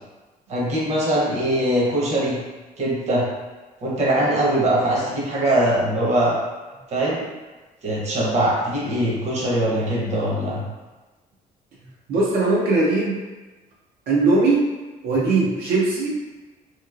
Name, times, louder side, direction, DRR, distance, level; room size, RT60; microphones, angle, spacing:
voice 1, 0.5-2.4 2.8-3.2 3.8-6.4 6.9-7.2 7.8-10.6, right 1 dB, 45° right, -5 dB, 0.9 m, -21 dB
voice 2, 12.1-13.2 14.1-14.7 15.0-16.1, right 3 dB, 85° right, -5 dB, 0.6 m, -19 dB
3.0 x 2.8 x 2.3 m, 1.2 s
cardioid pair, 145°, 16 cm